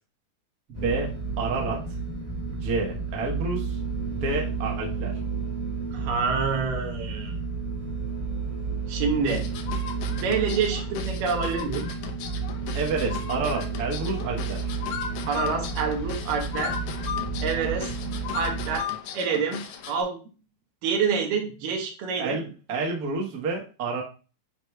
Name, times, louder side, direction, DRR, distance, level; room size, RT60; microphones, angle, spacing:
sound 1, 0.7-18.8, right 4 dB, 30° right, 0.8 m, -32 dB
voice 1, 0.7-1.8 2.5-3.8 4.1-5.2 12.7-14.7 22.2-24.0, right 3 dB, 65° right, 0 dB, 0.9 m, -29 dB
voice 2, 5.9-7.4 8.9-9.5 10.1-11.9 15.3-16.8 17.4-17.9 18.3-18.9 19.1-20.2 20.8-22.4, right 5 dB, 90° right, 2 dB, 2.8 m, -27 dB
sound 2, 9.3-20.0, left 8 dB, 70° left, 2.0 m, -36 dB
9.9 x 4.8 x 2.2 m, 0.35 s
omnidirectional pair, 3.7 m